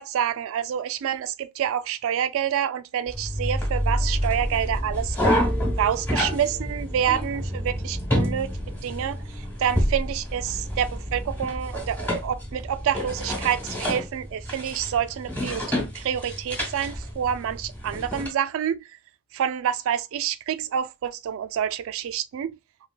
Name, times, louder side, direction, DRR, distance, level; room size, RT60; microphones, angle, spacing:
voice 1, 0.0-5.2 5.8-15.6 15.9-18.9 19.3-22.6, right 9 dB, 65° right, 0.3 m, -28 dB
sound 1, 3.1-18.3, equal, 10° left, 1.1 m, -28 dB
3.2 x 2.9 x 2.2 m
head